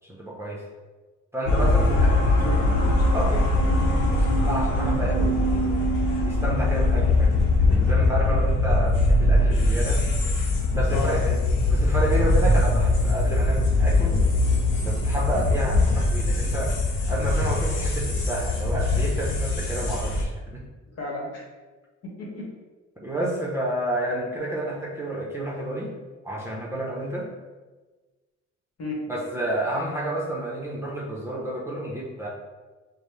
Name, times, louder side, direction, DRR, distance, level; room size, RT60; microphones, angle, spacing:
voice 1, 0.0-0.7 1.3-2.1 3.1-3.3 4.1-5.8 6.2-10.0 10.7-11.4 11.7-14.3 14.8-20.6 23.0-25.9 26.2-27.3 29.1-32.3, right 1 dB, 10° right, -4 dB, 0.8 m, -30 dB
sound 1, 1.5-20.2, left 2 dB, 75° left, 0.9 m, -22 dB
voice 2, 1.9-3.4 8.3-8.4 10.9-11.3 21.0-21.4 22.0-22.5 28.8-29.0, left 2 dB, 55° left, -3 dB, 1.3 m, -34 dB
5.1 x 2.2 x 3.2 m, 1.3 s
cardioid pair, 90°, 30 cm